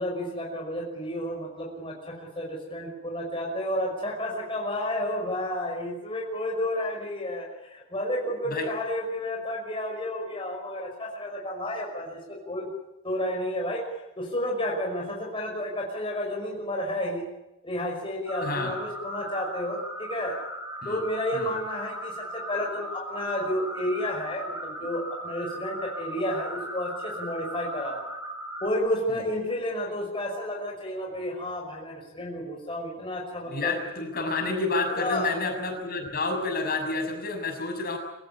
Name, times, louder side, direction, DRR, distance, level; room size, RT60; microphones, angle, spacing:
voice 1, 0.0-12.7 13.0-13.8 14.2-17.3 17.6-20.4 20.9-28.0 28.6-33.8 34.9-35.4, left 1 dB, 25° left, -1 dB, 5.5 m, -31 dB
sound 1, 18.3-28.7, equal, 10° right, 6.2 m, -37 dB
voice 2, 18.4-18.7 20.8-21.0 21.3-21.5 29.1-29.2 33.5-38.0, left 3 dB, 50° left, 4 dB, 6.6 m, -29 dB
26.0 x 16.5 x 9.9 m, 0.96 s
head